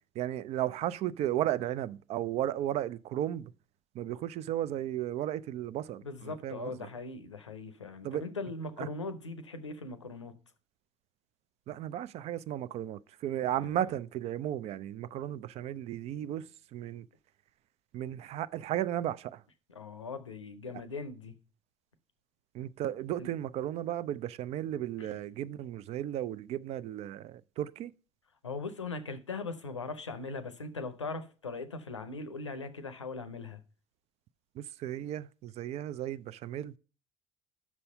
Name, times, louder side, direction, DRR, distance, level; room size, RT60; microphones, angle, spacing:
voice 1, 0.2-3.5 3.9-6.9 8.0-8.2 8.8-8.9 11.7-17.1 17.9-19.4 22.5-27.9 34.6-36.7, right 12 dB, 45° right, 0.4 m, -35 dB
voice 2, 6.0-10.3 13.5-13.8 19.7-21.3 23.2-23.3 25.0-25.1 28.4-33.6, left 3 dB, 85° left, 0.6 m, -40 dB
6.1 x 5.5 x 5.3 m
figure-of-eight pair, 55°, 15 cm